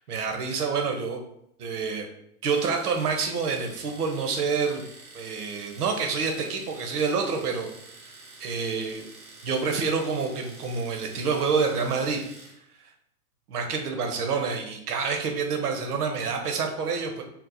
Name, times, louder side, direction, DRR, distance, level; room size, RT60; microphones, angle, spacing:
voice 1, 0.1-1.2 1.6-2.1 2.4-4.8 5.1-7.7 8.4-9.0 9.4-12.2 13.5-17.2, right 5 dB, 80° right, 3 dB, 0.7 m, -27 dB
Domestic sounds home sounds, 2.4-12.6, right 2 dB, 15° right, 0.3 m, -48 dB
2.7 x 2.0 x 3.9 m, 0.74 s
hypercardioid pair, 105°, 46 cm